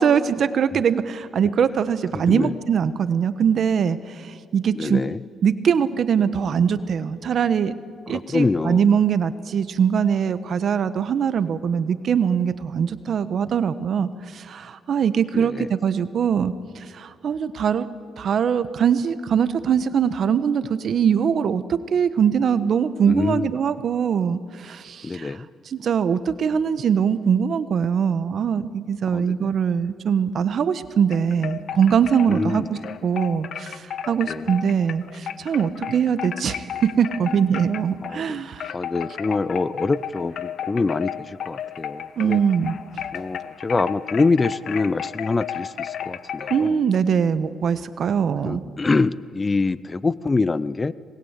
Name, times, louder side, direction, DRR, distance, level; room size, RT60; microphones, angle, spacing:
voice 1, 0.0-5.0 5.4-7.7 8.1-16.5 16.9-17.9 18.2-25.3 25.7-32.6 33.0-36.6 37.0-38.7 42.2-42.8 46.5-48.6, right 7 dB, 60° right, 13 dB, 1.3 m, -22 dB
voice 2, 2.1-2.5 4.7-5.2 8.1-8.8 15.3-15.7 23.1-23.5 25.0-25.5 29.1-29.6 32.3-32.8 34.2-34.6 38.0-42.4 43.1-46.8 48.4-50.9, left 3 dB, 25° left, 18 dB, 0.7 m, -25 dB
sound 1, 31.1-38.3 38.6-46.7, left 9 dB, 65° left, 1.1 m, -33 dB
27.0 x 20.5 x 8.3 m, 2.2 s
cardioid pair, 90°, 0 cm